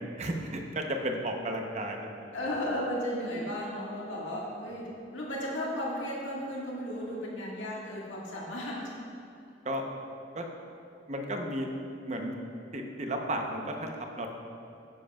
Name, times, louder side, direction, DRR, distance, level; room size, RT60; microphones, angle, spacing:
voice 1, 0.2-2.3 9.6-9.8 10.3-10.5 11.1-11.7 12.0-12.3 12.7-14.3, right 1 dB, 35° right, 2 dB, 0.8 m, -33 dB
voice 2, 2.3-8.9, equal, 85° left, -5 dB, 1.8 m, -34 dB
11.0 x 10.0 x 2.4 m, 2.7 s
head